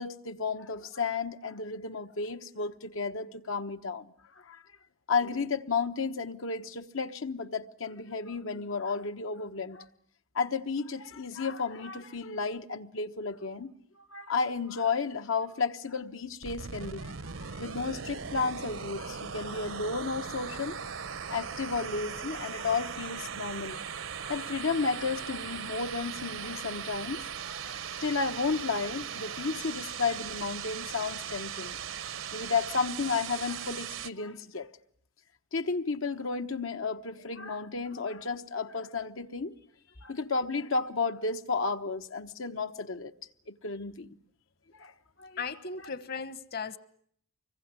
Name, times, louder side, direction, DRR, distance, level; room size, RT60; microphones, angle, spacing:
voice 1, 0.0-4.1 4.5-4.6 5.1-9.8 10.3-13.7 14.1-20.8 21.3-23.8 24.2-31.8 32.3-34.7 35.5-39.5 40.0-43.1 43.5-44.1 44.8-44.9 45.2-45.4, left 4 dB, 85° left, 1.2 m, -33 dB
sound 1, 16.4-34.1, right 7 dB, 85° right, 1.1 m, -39 dB
voice 2, 45.4-46.8, left 5 dB, 50° left, 1.2 m, -36 dB
25.0 x 22.5 x 9.7 m
head